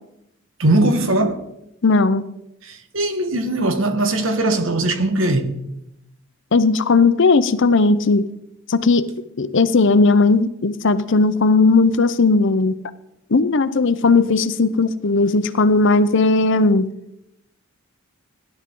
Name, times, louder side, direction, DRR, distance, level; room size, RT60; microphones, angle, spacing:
voice 1, 0.6-1.4 2.7-5.5, right 2 dB, 65° right, 1.4 m, -20 dB
voice 2, 1.8-2.3 6.5-8.3 8.7-9.1 9.4-12.7 13.3-16.9, left 3 dB, 60° left, 0.7 m, -16 dB
17.0 x 11.0 x 3.8 m
head